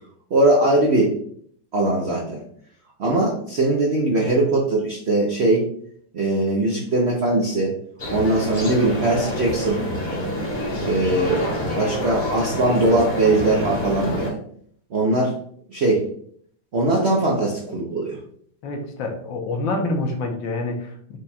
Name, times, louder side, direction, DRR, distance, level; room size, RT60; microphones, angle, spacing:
voice 1, 0.3-1.2 1.7-2.4 3.0-5.7 6.1-7.8 8.1-9.8 10.8-11.5 11.8-14.4 14.9-15.3 15.7-16.0 16.7-18.2, right 2 dB, 85° right, -1 dB, 0.5 m, -20 dB
sound 1, 8.0-14.3, equal, 40° left, 0.7 m, -27 dB
voice 2, 18.6-21.2, left 2 dB, 75° left, 3 dB, 1.5 m, -27 dB
5.0 x 2.3 x 4.1 m, 0.63 s
omnidirectional pair, 2.2 m